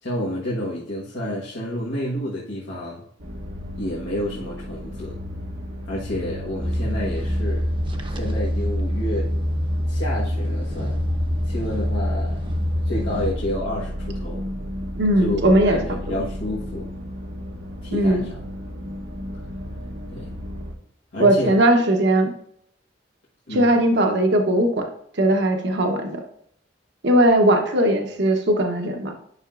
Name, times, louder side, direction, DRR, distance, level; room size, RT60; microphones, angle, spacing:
voice 1, 0.0-3.0 3.7-5.2 5.9-7.7 8.1-9.3 9.9-11.0 11.4-14.5 15.2-15.4 15.7-16.9 17.8-18.4 19.3-19.4 20.1-20.3 21.1-21.6 23.5-23.8, left 1 dB, 80° left, -6 dB, 1.4 m, -30 dB
sound 1, 3.2-20.8, equal, 90° right, 1.1 m, -33 dB
sound 2, 6.6-13.3, equal, 30° right, 0.8 m, -25 dB
voice 2, 15.0-16.0 17.9-18.3 21.2-22.3 23.5-24.9 25.2-26.2 27.0-29.1, right 1 dB, 65° right, 4 dB, 0.9 m, -19 dB
9.8 x 5.7 x 2.5 m, 0.70 s
head